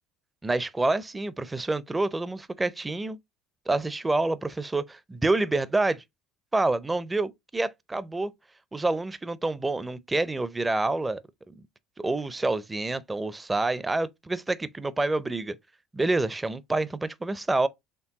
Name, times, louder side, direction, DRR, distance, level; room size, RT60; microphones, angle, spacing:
voice 1, 0.4-3.2 3.7-6.0 6.5-8.3 8.7-11.2 12.0-15.6 15.9-17.7, right 2 dB, 15° right, 0.4 m, -27 dB
4.4 x 3.4 x 2.8 m
hypercardioid pair, 80°, 0 cm